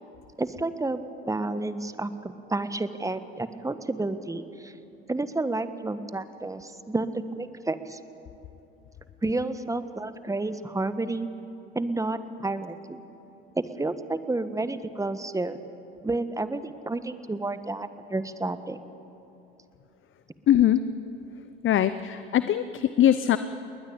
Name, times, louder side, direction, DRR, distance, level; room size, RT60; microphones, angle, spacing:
voice 1, 0.4-4.7 5.1-8.0 9.2-11.3 11.7-13.0 13.5-15.6 16.0-18.8, right 2 dB, 10° right, 12 dB, 1.4 m, -30 dB
voice 2, 20.5-20.8 21.6-23.4, left 11 dB, 40° left, 12 dB, 0.8 m, -21 dB
20.5 x 20.0 x 8.8 m, 2.9 s
hypercardioid pair, 65°, 30 cm